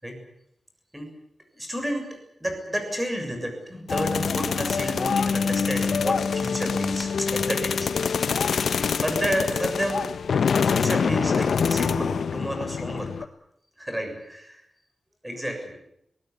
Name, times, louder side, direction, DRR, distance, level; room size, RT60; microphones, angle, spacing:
voice 1, 1.5-8.7 9.0-10.1 10.6-13.3 13.8-14.6 15.2-15.7, equal, 10° right, 4 dB, 7.0 m, -31 dB
sound 1, 3.9-13.2, left 6 dB, 85° left, 0.8 m, -25 dB
22.5 x 19.0 x 9.8 m, 0.78 s
wide cardioid pair, 140°, 0 cm